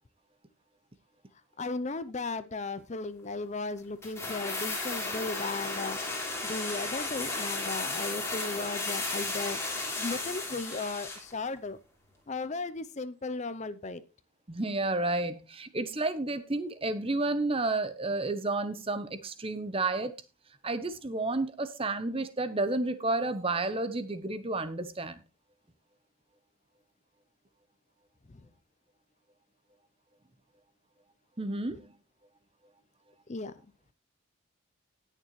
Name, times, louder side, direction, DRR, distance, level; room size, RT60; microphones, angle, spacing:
voice 1, 1.6-6.0 6.4-9.6 10.0-11.8 12.3-14.0 33.3-33.5, left 3 dB, 30° left, 0.5 m, -36 dB
sound 1, 4.0-11.3 11.6-11.7, left 2 dB, 10° left, 3.1 m, -34 dB
voice 2, 14.5-20.1 20.6-25.2 31.4-31.9, right 2 dB, 25° right, 0.8 m, -31 dB
18.5 x 6.7 x 3.1 m
head